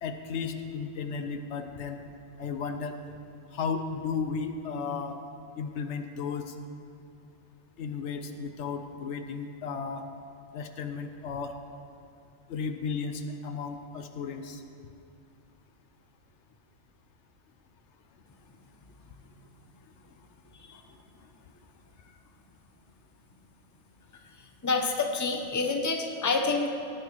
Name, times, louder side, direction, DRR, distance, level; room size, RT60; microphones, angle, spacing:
voice 1, 0.0-2.0 2.4-3.0 3.5-5.2 5.6-6.5 7.8-10.1 10.5-11.6 12.5-14.6, left 5 dB, 75° left, 7 dB, 0.9 m, -34 dB
voice 2, 24.6-26.7, left 4 dB, 20° left, 3 dB, 0.7 m, -27 dB
19.0 x 9.3 x 3.1 m, 2.5 s
omnidirectional pair, 1.2 m